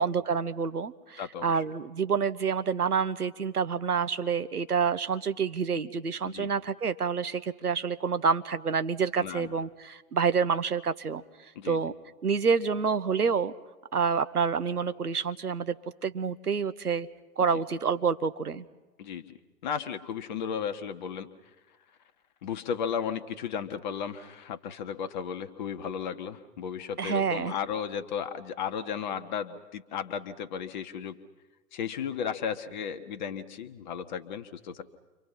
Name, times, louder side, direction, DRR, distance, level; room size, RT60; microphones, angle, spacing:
voice 1, 0.0-11.2 11.6-11.9 12.2-13.5 13.9-15.8 16.0-17.1 17.4-18.6 27.0-27.5, right 6 dB, 70° right, 11 dB, 1.2 m, -28 dB
voice 2, 1.2-1.6 6.2-6.5 9.2-9.5 11.5-11.8 17.5-17.6 19.0-21.3 22.4-31.2 31.7-34.8, left 7 dB, 30° left, 8 dB, 1.2 m, -34 dB
29.5 x 25.0 x 5.8 m, 1.2 s
figure-of-eight pair, 125°, 47 cm